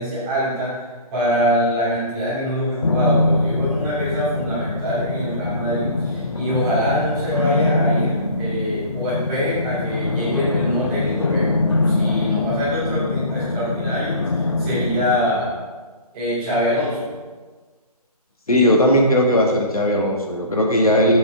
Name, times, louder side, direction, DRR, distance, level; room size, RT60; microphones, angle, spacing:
voice 1, 0.0-11.5 11.9-15.5 16.1-17.1, equal, 10° right, -11 dB, 3.0 m, -24 dB
sound 1, 2.8-15.2, left 2 dB, 45° left, 0.8 m, -23 dB
voice 2, 18.5-21.2, equal, 60° left, 1 dB, 1.5 m, -17 dB
9.1 x 8.5 x 3.5 m, 1.4 s
figure-of-eight pair, 160°, 20 cm